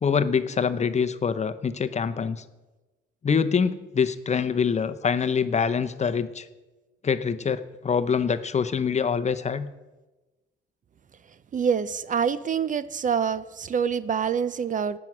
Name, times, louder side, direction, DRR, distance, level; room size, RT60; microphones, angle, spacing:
voice 1, 0.0-2.4 3.2-6.5 7.0-9.7, left 6 dB, 35° left, 11 dB, 0.7 m, -25 dB
voice 2, 11.5-15.0, right 7 dB, 40° right, 16 dB, 0.5 m, -26 dB
18.0 x 6.1 x 6.1 m, 1.1 s
cardioid pair, 90°, 20 cm